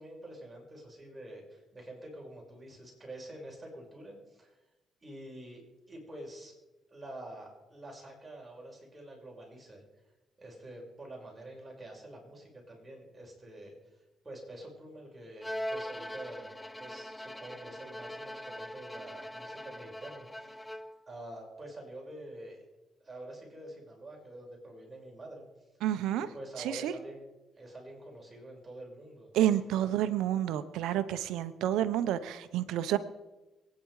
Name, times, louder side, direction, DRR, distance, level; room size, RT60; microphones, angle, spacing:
voice 1, 0.0-4.6 5.0-5.6 5.9-6.5 6.9-9.8 10.4-20.6 21.1-22.6 23.0-25.4 26.2-27.2 27.6-30.1, right 1 dB, 20° right, -1 dB, 5.7 m, -47 dB
Bowed string instrument, 15.4-21.1, equal, 10° left, 0.6 m, -41 dB
voice 2, 25.8-26.3 26.6-26.9 29.3-33.0, right 12 dB, 90° right, 12 dB, 0.9 m, -29 dB
24.5 x 9.7 x 4.9 m, 1.1 s
cardioid pair, 90°, 0 cm